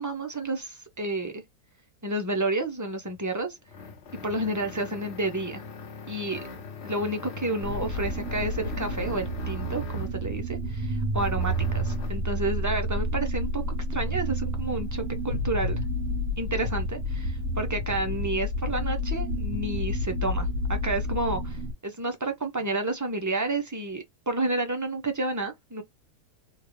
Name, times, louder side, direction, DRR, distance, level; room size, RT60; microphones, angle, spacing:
voice 1, 0.0-1.4 2.0-3.6 4.2-5.6 6.1-6.4 6.8-13.6 13.9-15.8 16.4-21.6 21.8-25.8, right 2 dB, 25° right, 0.4 m, -30 dB
sound 1, 3.0-10.3 11.1-12.3, left 5 dB, 55° left, 0.9 m, -41 dB
sound 2, 7.6-21.7, equal, 65° right, 1.6 m, -30 dB
3.7 x 2.4 x 3.1 m
omnidirectional pair, 1.6 m